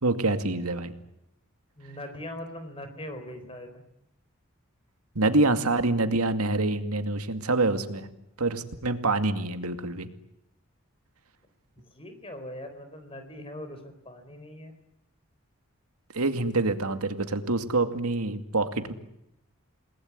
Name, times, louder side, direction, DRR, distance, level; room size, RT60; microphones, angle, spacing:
voice 1, 0.0-0.9 5.2-8.1 8.4-10.1 16.1-18.9, right 2 dB, 90° right, 8 dB, 2.3 m, -26 dB
voice 2, 1.8-3.8 11.8-14.8, left 1 dB, 25° left, 8 dB, 4.1 m, -41 dB
29.0 x 20.0 x 9.7 m, 0.82 s
head